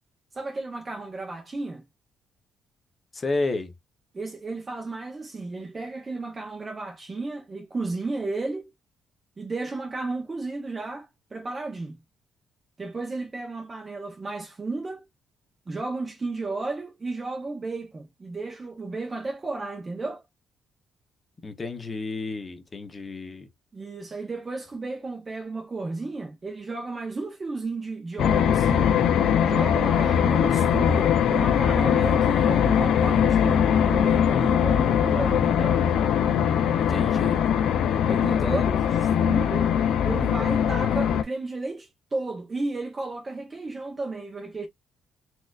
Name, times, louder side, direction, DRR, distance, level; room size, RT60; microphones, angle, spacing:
voice 1, 0.3-1.8 4.1-8.7 9.4-12.0 12.8-15.0 15.7-20.2 23.7-28.9 29.4-35.8 38.0-39.7 40.0-44.7, right 3 dB, 20° right, 0.6 m, -33 dB
voice 2, 3.1-3.7 21.4-23.5 36.8-37.4 38.4-38.7, left 3 dB, 20° left, 0.6 m, -31 dB
sound 1, 28.2-41.2, left 8 dB, 65° left, 0.4 m, -21 dB
4.3 x 2.4 x 2.3 m
cardioid pair, 165°, 0 cm